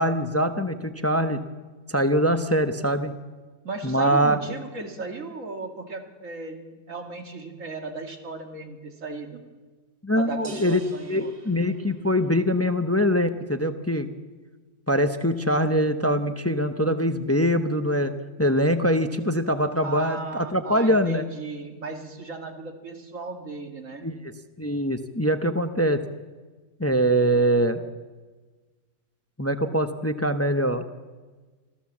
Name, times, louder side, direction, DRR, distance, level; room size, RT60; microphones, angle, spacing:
voice 1, 0.0-1.4 1.9-3.1 3.8-4.4 10.0-10.8 11.1-14.1 14.9-18.1 18.4-21.2 24.0-24.2 24.6-26.0 26.8-27.8 29.4-30.8, equal, 15° left, 9 dB, 0.6 m, -23 dB
voice 2, 3.6-9.4 10.1-11.3 19.8-24.1, right 3 dB, 55° right, 4 dB, 2.5 m, -36 dB
sound 1, 10.4-12.5, right 5 dB, 40° right, 2.0 m, -45 dB
26.0 x 15.5 x 7.3 m, 1.4 s
omnidirectional pair, 1.6 m